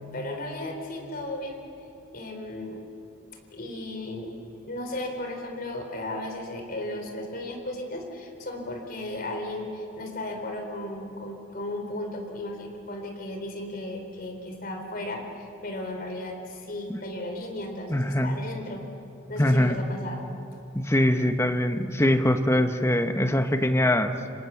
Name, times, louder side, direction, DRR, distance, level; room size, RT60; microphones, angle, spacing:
voice 1, 0.1-1.6 2.1-2.8 3.5-4.3 4.6-18.8 19.3-20.3, left 1 dB, 50° left, 3 dB, 3.9 m, -35 dB
voice 2, 17.9-18.3 19.4-19.8 20.7-24.1, left 1 dB, 15° left, 7 dB, 1.2 m, -23 dB
30.0 x 25.0 x 7.3 m, 3.0 s
head